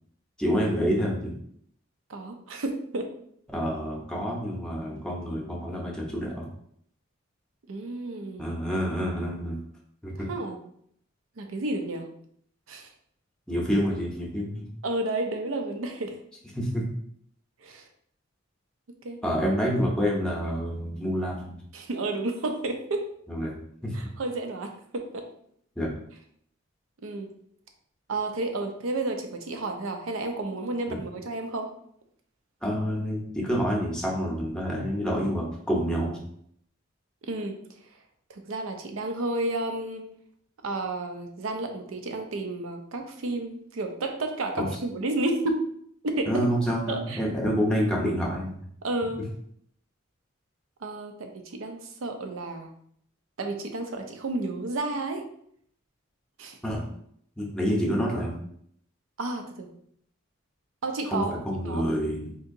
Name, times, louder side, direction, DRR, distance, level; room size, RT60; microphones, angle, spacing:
voice 1, 0.4-1.3 3.5-6.5 8.4-9.6 10.0-10.1 13.5-14.7 16.5-16.9 19.2-21.6 23.3-23.6 23.8-24.1 25.8-25.9 30.9-31.0 32.6-36.2 44.6-44.7 46.3-48.6 56.6-56.8 57.4-58.4 61.0-62.4, equal, 5° left, -2 dB, 0.7 m, -28 dB
voice 2, 2.1-3.1 7.7-8.6 10.3-10.6 11.4-12.1 12.7-12.9 14.8-16.2 17.6-17.9 19.0-19.2 21.7-23.1 23.9-25.3 27.0-27.3 28.1-31.7 37.2-37.6 38.3-40.1 40.6-45.7 46.0-46.5 46.9-47.2 48.8-49.2 50.8-52.7 53.4-55.2 56.4-56.6 59.2-59.7 60.8-61.3 61.6-61.8, right 2 dB, 75° right, 5 dB, 0.5 m, -31 dB
3.8 x 2.7 x 2.6 m, 0.67 s
head